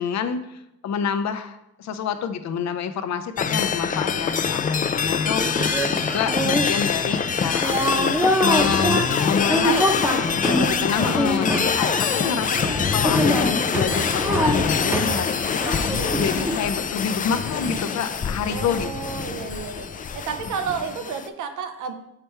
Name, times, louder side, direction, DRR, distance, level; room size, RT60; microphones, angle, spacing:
voice 1, 0.0-9.8 10.4-18.9, left 7 dB, 65° left, 10 dB, 0.7 m, -28 dB
sound 1, 3.4-21.3, left 6 dB, 30° left, 0.4 m, -24 dB
sound 2, 5.4-16.6, equal, 10° right, 0.8 m, -25 dB
voice 2, 9.4-9.8 18.5-19.9 20.1-21.9, right 6 dB, 80° right, 7 dB, 0.8 m, -31 dB
6.8 x 3.4 x 4.4 m, 0.83 s
cardioid pair, 90°, 30 cm